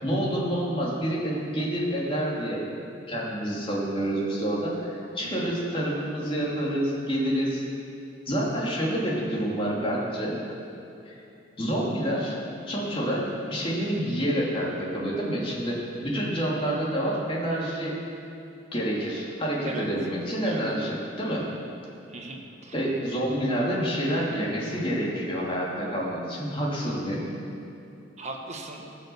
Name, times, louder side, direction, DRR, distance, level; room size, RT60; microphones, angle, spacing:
voice 1, 0.0-2.6 3.1-7.6 8.3-10.4 11.1-11.2 11.6-12.4 12.7-15.7 16.0-17.9 18.7-21.4 22.7-27.3, equal, 30° left, -4 dB, 2.6 m, -28 dB
voice 2, 22.1-22.7 28.2-28.9, right 2 dB, 35° right, 1 dB, 1.4 m, -38 dB
16.5 x 6.4 x 7.0 m, 2.8 s
head